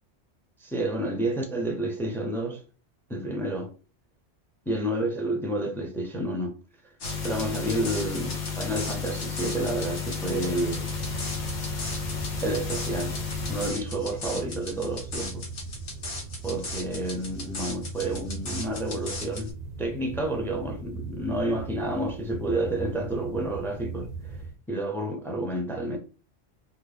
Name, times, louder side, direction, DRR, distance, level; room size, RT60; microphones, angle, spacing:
voice 1, 0.6-2.6 3.1-3.7 4.7-6.6 6.8-6.9 7.2-10.9 12.4-13.2 13.4-15.5 16.4-24.4 24.7-26.0, right 1 dB, 5° left, 0.4 m, -30 dB
sound 1, 7.0-19.5, left 2 dB, 85° left, 1.2 m, -38 dB
sound 2, 7.0-13.7, left 5 dB, 45° left, 0.9 m, -33 dB
sound 3, 10.9-24.6, right 4 dB, 50° right, 0.5 m, -39 dB
3.7 x 2.2 x 3.1 m
omnidirectional pair, 1.1 m